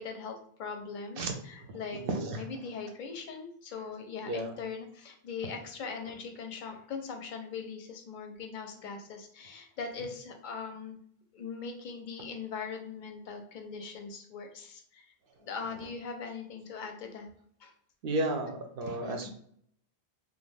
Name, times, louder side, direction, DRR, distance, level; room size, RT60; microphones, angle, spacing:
voice 1, 0.0-2.0 2.3-11.0 11.3-15.0 15.4-17.3 17.6-17.7 19.0-19.3, left 5 dB, 60° left, 4 dB, 0.6 m, -41 dB
voice 2, 2.0-2.5 4.3-4.5 18.0-19.3, right 2 dB, 65° right, 4 dB, 0.7 m, -32 dB
2.4 x 2.2 x 3.2 m, 0.65 s
omnidirectional pair, 1.0 m